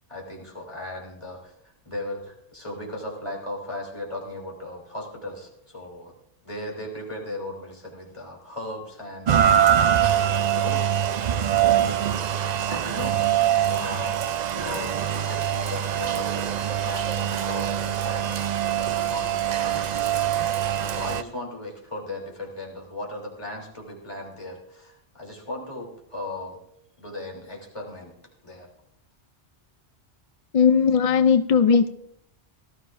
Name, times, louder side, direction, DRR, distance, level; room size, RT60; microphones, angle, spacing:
voice 1, 0.1-1.5 1.8-6.1 6.4-9.6 10.2-11.1 12.2-12.3 12.7-13.4 13.6-14.2 14.5-16.5 16.7-18.4 19.0-20.0 20.9-26.6 27.0-28.1 28.4-28.7, left 1 dB, 25° left, -2 dB, 3.2 m, -37 dB
Rain, 9.3-21.2, right 10 dB, 55° right, 0.5 m, -23 dB
voice 2, 30.5-31.9, left 6 dB, 60° left, 10 dB, 0.3 m, -18 dB
18.0 x 13.5 x 2.5 m, 0.75 s
omnidirectional pair, 1.2 m